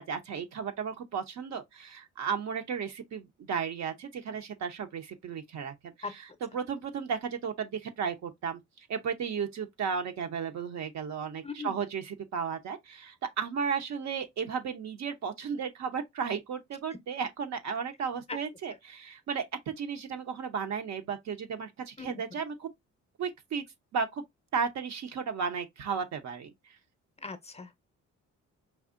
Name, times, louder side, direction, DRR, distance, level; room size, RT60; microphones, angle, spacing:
voice 1, 0.0-22.7 23.2-23.6 23.9-24.2 24.5-26.8, right 6 dB, 65° right, 0.8 m, -34 dB
voice 2, 27.2-27.8, left 4 dB, 20° left, 0.6 m, -39 dB
4.7 x 2.7 x 2.5 m
cardioid pair, 90°, 30 cm